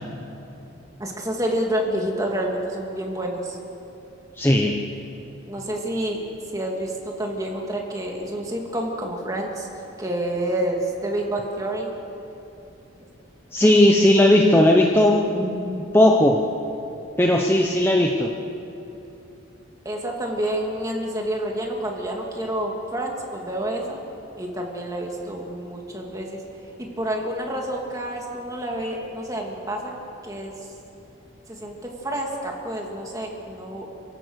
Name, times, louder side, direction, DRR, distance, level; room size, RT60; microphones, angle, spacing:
voice 1, 1.0-3.6 5.5-6.2 6.5-9.7 10.0-11.9 13.6-13.7 19.8-24.0 24.4-26.4 26.8-29.9 30.2-30.7 31.5-33.9, right 1 dB, 15° right, 0 dB, 2.6 m, -28 dB
voice 2, 4.4-4.8 13.5-16.4 17.2-18.3, left 1 dB, 10° left, 0 dB, 0.9 m, -17 dB
28.5 x 16.0 x 6.5 m, 2.9 s
head